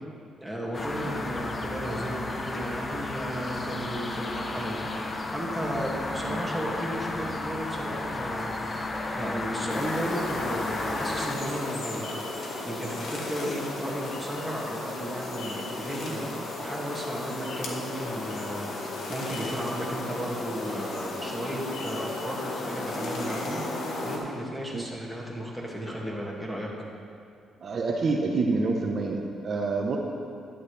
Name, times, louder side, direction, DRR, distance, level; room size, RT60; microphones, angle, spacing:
voice 1, 0.4-5.0 5.3-8.6 9.1-12.2 12.6-18.7 19.1-26.7, equal, ahead, -4 dB, 2.3 m, -34 dB
sound 1, 0.7-11.3, left 2 dB, 30° left, 0.9 m, -33 dB
sound 2, 9.7-24.2, left 2 dB, 70° left, 1.6 m, -35 dB
voice 2, 27.6-30.0, right 3 dB, 50° right, 0 dB, 0.9 m, -27 dB
11.5 x 10.5 x 3.4 m, 2.4 s
cardioid pair, 90°, 0 cm